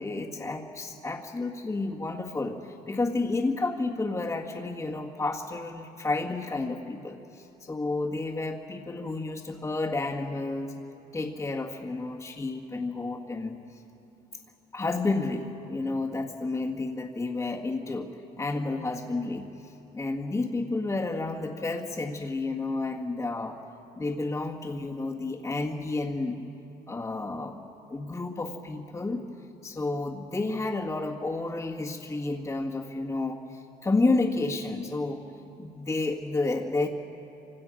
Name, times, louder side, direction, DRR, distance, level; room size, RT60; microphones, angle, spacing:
voice 1, 0.0-10.7 11.1-13.8 14.7-18.1 18.4-23.6 23.9-26.4 26.9-27.6 27.9-29.2 29.6-35.2 35.6-36.9, left 3 dB, 20° left, -4 dB, 1.8 m, -31 dB
27.0 x 26.5 x 6.4 m, 2.8 s
cardioid pair, 110°, 17 cm